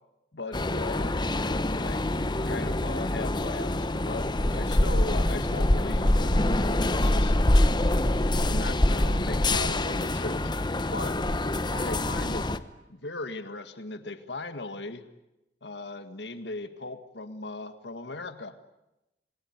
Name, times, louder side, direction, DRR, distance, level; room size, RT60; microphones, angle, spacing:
voice 1, 0.3-2.0 2.5-7.4 8.4-10.4 10.9-11.2 11.7-15.1 15.6-18.5, left 2 dB, 75° left, 9 dB, 1.9 m, -38 dB
sound 1, 0.5-12.6, left 1 dB, 25° left, 1.0 m, -25 dB
sound 2, 6.1-10.4 10.6-10.7, left 3 dB, 40° left, 3.6 m, -50 dB
27.5 x 21.0 x 9.6 m, 0.93 s
head